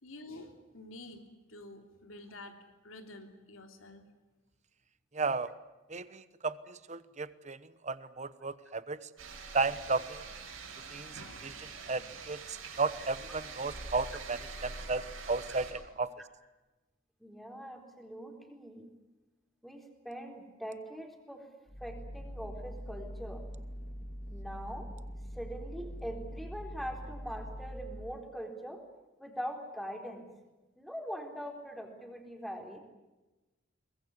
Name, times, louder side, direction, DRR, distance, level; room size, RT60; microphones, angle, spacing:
voice 1, 0.0-1.2 1.5-2.6 2.8-4.0, left 2 dB, 90° left, 5 dB, 3.1 m, -49 dB
voice 2, 5.1-5.5 5.9-7.6 7.8-9.0 9.5-10.2 10.9-11.1 11.4-11.5 11.9-12.0 12.3-16.1, right 3 dB, 35° right, 14 dB, 1.1 m, -34 dB
sound 1, 9.2-15.7, right 4 dB, 90° right, 6.5 m, -45 dB
voice 3, 17.2-18.9 19.6-21.5 21.8-23.4 24.3-24.9 25.3-28.8 29.2-30.3 30.8-32.8, equal, ahead, 3 dB, 4.0 m, -42 dB
sound 2, 21.7-28.2, equal, 40° left, 1.9 m, -43 dB
23.5 x 20.5 x 9.7 m, 1.1 s
head